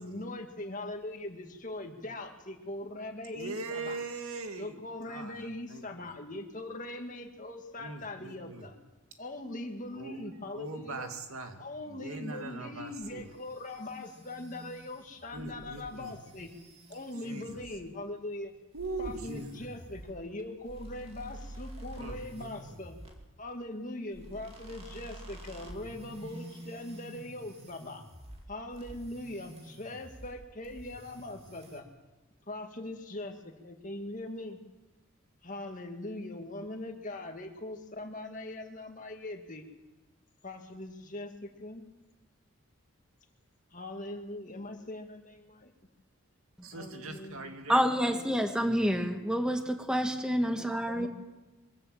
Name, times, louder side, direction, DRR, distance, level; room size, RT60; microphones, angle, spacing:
voice 1, 0.0-4.0 4.6-8.8 9.2-11.1 11.6-16.5 16.9-18.5 19.0-23.0 23.4-28.1 28.5-31.8 32.5-34.6 35.4-39.7 40.4-41.8 43.7-45.7 46.7-47.5 47.9-48.6 50.8-51.1, left 1 dB, 35° left, 2.1 m, -41 dB
voice 2, 3.3-4.8 5.1-5.8 7.8-8.7 9.9-10.2 10.5-11.6 11.8-13.3 15.3-16.1 17.2-17.6 18.7-19.5 22.0-22.5 46.6-47.8, right 3 dB, 85° right, 2.3 m, -41 dB
sound 1, 13.0-17.9 18.7-23.2 24.1-28.5 28.7-30.4 30.6-31.8, right 1 dB, 25° right, 2.6 m, -48 dB
voice 3, 47.7-51.1, equal, 5° right, 1.4 m, -28 dB
23.0 x 14.5 x 7.8 m
head